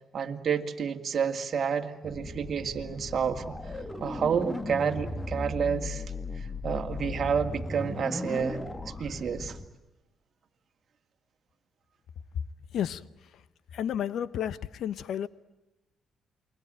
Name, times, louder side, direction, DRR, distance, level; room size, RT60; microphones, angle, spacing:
voice 1, 0.1-3.6 4.0-6.0 6.4-8.6 9.0-9.6, right 7 dB, 50° right, 2.4 m, -30 dB
sound 1, 2.0-9.7, left 2 dB, 15° left, 2.2 m, -37 dB
voice 2, 13.7-15.3, left 9 dB, 70° left, 1.0 m, -31 dB
29.0 x 23.0 x 9.0 m
cardioid pair, 90°, 0 cm